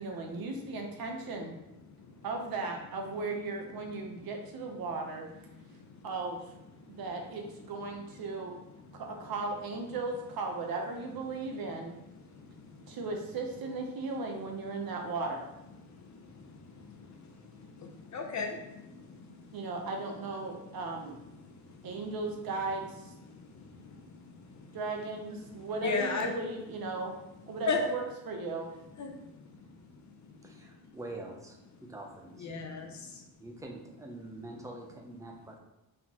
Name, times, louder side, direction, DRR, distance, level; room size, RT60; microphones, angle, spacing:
voice 1, 0.0-1.5 2.2-5.3 6.0-6.5 6.9-8.6 8.9-11.9 12.9-15.5 19.5-21.2 21.8-23.1 24.7-27.1 27.5-28.7, right 3 dB, 75° right, 2 dB, 0.8 m, -36 dB
voice 2, 1.9-2.2 5.5-6.1 6.8-7.0 7.7-7.8 8.2-8.4 8.9-9.0 11.4-11.7 12.1-13.0 15.8-19.6 20.7-20.8 21.3-22.0 23.3-24.8 25.5-26.3 27.7-27.8 29.0-30.9 32.4-33.2, left 4 dB, 50° left, 3 dB, 0.7 m, -39 dB
voice 3, 30.4-32.5 33.4-35.6, right 2 dB, 10° right, 1 dB, 0.5 m, -45 dB
4.3 x 3.8 x 2.9 m, 0.90 s
wide cardioid pair, 175°, 36 cm